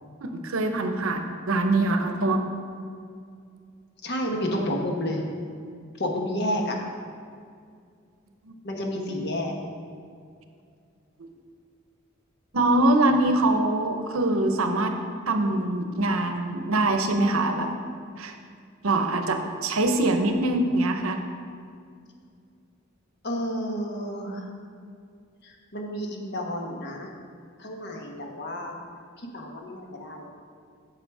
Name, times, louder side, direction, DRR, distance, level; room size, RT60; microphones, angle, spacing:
voice 1, 0.2-2.4 11.2-11.3 12.5-14.9 15.3-17.7 18.2-18.3 18.8-21.2, right 2 dB, 90° right, 6 dB, 0.8 m, -23 dB
voice 2, 4.0-5.2 6.0-6.8 8.6-9.5 23.2-24.5 25.4-27.1 27.6-28.8 29.2-30.3, equal, 55° left, 1 dB, 1.2 m, -30 dB
8.0 x 6.8 x 4.8 m, 2.2 s
head